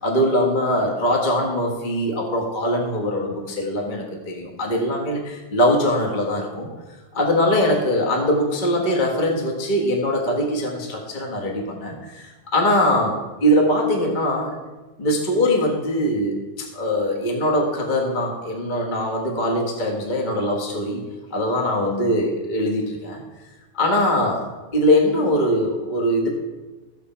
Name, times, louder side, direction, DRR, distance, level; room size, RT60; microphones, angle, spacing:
voice 1, 0.0-6.7 7.1-14.5 15.0-21.0 21.3-23.2 23.7-26.3, left 1 dB, 25° left, 0 dB, 1.4 m, -22 dB
14.0 x 8.2 x 4.4 m, 1.2 s
omnidirectional pair, 2.4 m